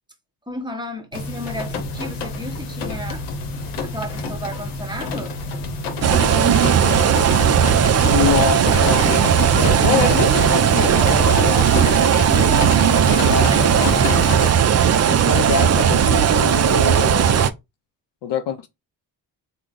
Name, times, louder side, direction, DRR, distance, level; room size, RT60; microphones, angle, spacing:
voice 1, 0.5-3.2 3.8-5.4 6.3-6.8 12.3-13.9, left 1 dB, 10° right, 1.1 m, -33 dB
sound 1, 1.1-14.5, left 3 dB, 85° left, 0.8 m, -28 dB
sound 2, 6.0-17.5, right 8 dB, 35° right, 0.4 m, -16 dB
voice 2, 8.0-11.7 13.3-13.9 15.1-17.5 18.2-18.7, left 7 dB, 60° left, 0.5 m, -25 dB
3.5 x 2.2 x 3.7 m
supercardioid pair, 45°, 50 cm